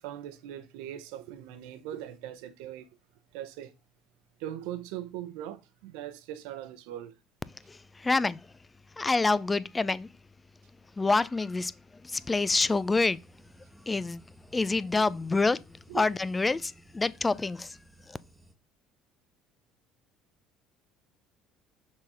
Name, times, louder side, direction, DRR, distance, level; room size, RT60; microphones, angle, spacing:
voice 1, 0.0-2.9 3.3-3.7 4.4-7.1 15.9-16.0, right 12 dB, 75° right, 0.8 m, -40 dB
voice 2, 7.7-8.4 9.0-10.1 11.0-13.2 13.9-14.2 14.5-15.6 15.9-17.8 18.1-18.2, left 3 dB, 20° left, 0.5 m, -27 dB
sound 1, 12.2-18.5, right 1 dB, 10° right, 1.2 m, -57 dB
6.3 x 4.1 x 4.8 m
hypercardioid pair, 75°, 0 cm